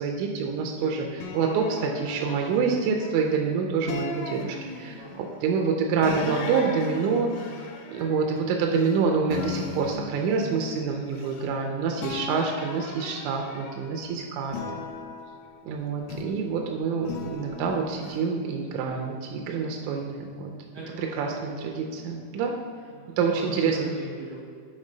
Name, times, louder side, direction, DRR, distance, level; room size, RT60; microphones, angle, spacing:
voice 1, 0.0-7.4 7.9-14.8 15.7-20.5 21.2-22.6 23.2-23.8, right 5 dB, 80° right, 2 dB, 1.8 m, -27 dB
sound 1, 1.2-3.3 3.9-5.2 6.0-9.0 9.3-11.7 12.0-14.0 14.5-16.5 17.1-18.2, left 4 dB, 85° left, 1.5 m, -37 dB
voice 2, 4.8-5.5 19.8-20.1 20.7-21.6 22.9-24.5, right 1 dB, 60° right, -7 dB, 1.1 m, -40 dB
5.3 x 3.8 x 5.0 m, 2.1 s
omnidirectional pair, 3.7 m